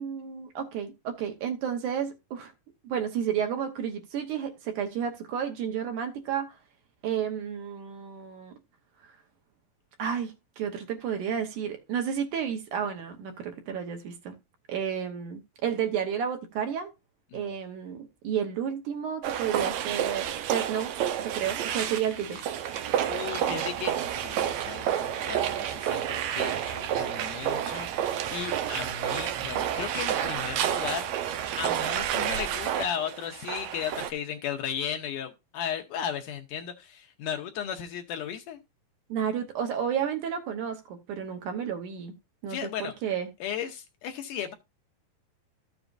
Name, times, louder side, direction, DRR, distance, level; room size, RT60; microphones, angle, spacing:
voice 1, 0.0-2.5 2.8-6.6 7.0-8.5 9.0-9.1 10.0-14.3 14.7-16.9 17.3-18.0 18.2-22.4 39.1-42.1 42.4-43.3, right 8 dB, 70° right, 2.2 m, -31 dB
sound 1, 19.2-34.1, right 10 dB, 90° right, 1.6 m, -30 dB
voice 2, 23.1-31.1 31.6-38.6 42.5-42.9 43.4-44.5, left 9 dB, 75° left, 2.1 m, -36 dB
14.0 x 7.0 x 2.5 m
omnidirectional pair, 4.2 m